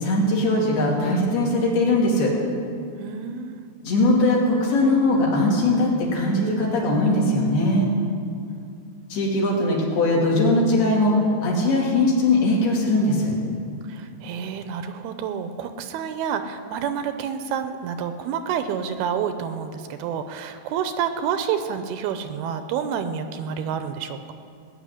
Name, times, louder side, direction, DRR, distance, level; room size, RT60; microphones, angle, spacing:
voice 1, 0.0-2.3 3.8-7.9 9.1-11.1 11.4-13.3, left 1 dB, 70° left, -3 dB, 4.6 m, -20 dB
voice 2, 3.0-3.6 13.9-24.3, right 7 dB, 80° right, 9 dB, 2.5 m, -29 dB
19.0 x 6.8 x 9.8 m, 2.4 s
omnidirectional pair, 4.7 m